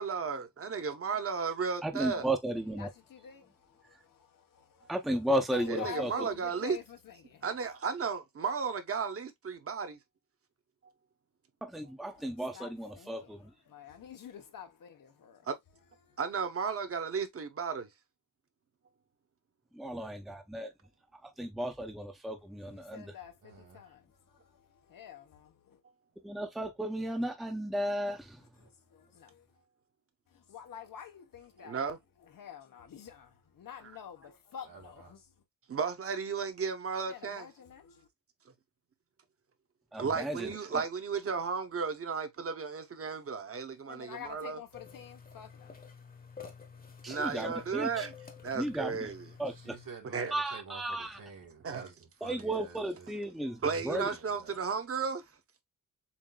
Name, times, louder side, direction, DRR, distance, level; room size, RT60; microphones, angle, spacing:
voice 1, 0.0-2.3 5.7-6.8 7.4-10.0 15.5-15.6 16.2-17.9 19.8-19.9 31.6-32.0 35.7-37.5 40.0-44.6 47.1-48.1 48.4-49.3 50.1-50.3 51.6-51.9 53.6-55.2, right 5 dB, 45° right, 1.0 m, -34 dB
voice 2, 1.8-2.9 4.9-6.3 11.6-13.5 19.7-20.7 21.4-23.1 26.2-28.4 39.9-40.8 47.0-48.1 48.5-49.1 49.4-49.8 50.3-51.2 52.2-54.1, right 1 dB, ahead, 0.6 m, -34 dB
voice 3, 2.8-4.9 5.5-7.5 12.1-12.3 12.5-15.5 16.0-16.2 22.7-25.8 28.6-29.5 30.3-35.2 37.0-38.1 43.9-45.8, left 9 dB, 85° left, 1.1 m, -48 dB
voice 4, 23.4-23.9 34.6-35.1 49.5-53.2 53.8-54.6, right 5 dB, 80° right, 2.2 m, -49 dB
sound 1, 44.7-49.9, left 6 dB, 25° left, 0.9 m, -50 dB
7.2 x 2.6 x 2.3 m
wide cardioid pair, 160°, 32 cm